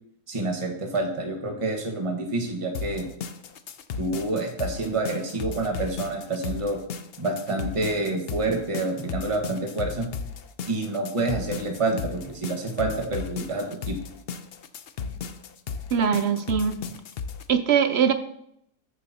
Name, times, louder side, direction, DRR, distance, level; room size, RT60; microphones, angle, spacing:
voice 1, 0.3-3.1 4.0-6.8 7.2-10.1 10.7-14.0, right 2 dB, 20° right, 1 dB, 1.4 m, -28 dB
sound 1, 2.7-17.4, left 6 dB, 60° left, 0.6 m, -35 dB
voice 2, 15.9-16.8 17.5-18.1, right 7 dB, 65° right, 10 dB, 0.6 m, -22 dB
14.0 x 7.8 x 2.8 m, 0.74 s
omnidirectional pair, 1.6 m